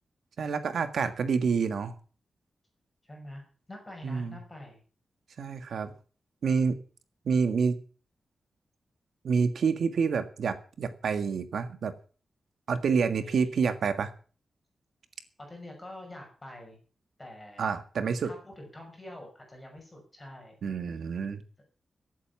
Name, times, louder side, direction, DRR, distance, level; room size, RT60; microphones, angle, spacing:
voice 1, 0.4-1.9 4.0-4.3 5.4-5.9 6.4-6.8 7.2-7.8 9.2-11.9 12.7-14.1 17.6-18.3 20.6-21.4, right 5 dB, 80° right, 10 dB, 1.7 m, -28 dB
voice 2, 3.0-3.4 3.7-4.8 13.2-13.5 15.4-16.8 17.2-17.7 18.2-20.6, left 1 dB, 15° left, 2 dB, 5.9 m, -46 dB
15.0 x 8.6 x 7.1 m, 0.40 s
wide cardioid pair, 165°, 0 cm